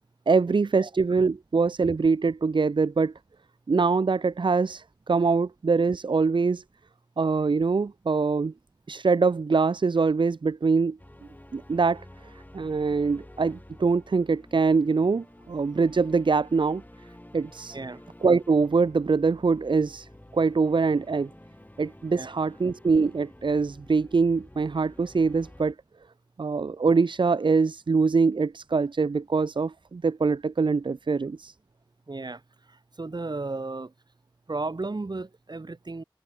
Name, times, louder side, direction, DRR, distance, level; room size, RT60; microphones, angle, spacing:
voice 1, 0.3-3.1 3.7-6.6 7.2-8.5 8.9-11.0 11.5-12.0 12.3-16.8 17.3-17.8 18.2-21.3 21.8-25.7 26.4-31.5, right 4 dB, 75° right, 0.5 m, -24 dB
sound 1, 11.0-25.7, left 1 dB, 20° left, 4.8 m, -50 dB
voice 2, 32.1-32.4 33.0-33.9 34.5-36.0, right 3 dB, 60° right, 1.3 m, -34 dB
open air
wide cardioid pair, 45°, 8 cm